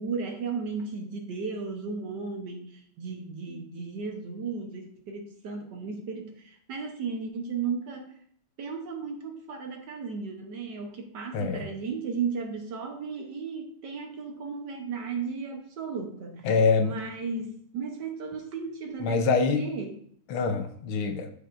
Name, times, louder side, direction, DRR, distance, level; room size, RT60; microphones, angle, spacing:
voice 1, 0.0-8.1 8.6-16.5 16.8-19.2 19.6-19.9, right 5 dB, 60° right, 4 dB, 1.4 m, -35 dB
voice 2, 11.3-11.7 16.4-16.9 19.0-19.7 20.3-21.3, left 4 dB, 80° left, 7 dB, 1.6 m, -25 dB
13.5 x 4.8 x 2.5 m, 0.62 s
omnidirectional pair, 2.3 m